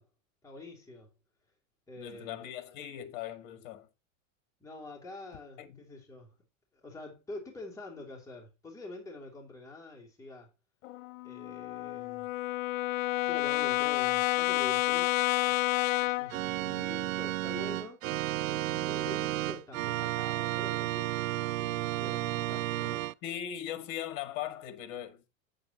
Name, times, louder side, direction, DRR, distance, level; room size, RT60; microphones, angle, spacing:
voice 1, 0.4-1.1 1.9-2.5 4.6-6.3 6.7-10.5 11.2-12.3 13.2-15.1 15.5-15.7 16.0-18.0 18.5-23.1, left 2 dB, 10° left, 3.1 m, -46 dB
voice 2, 2.0-3.9 5.6-5.8 21.7-21.8 23.2-25.2, left 11 dB, 50° left, 2.0 m, -39 dB
Brass instrument, 10.8-16.4, left 18 dB, 75° left, 0.5 m, -29 dB
Organ, 16.3-23.1, right 16 dB, 85° right, 0.6 m, -32 dB
9.1 x 8.9 x 2.9 m
supercardioid pair, 135°, 39 cm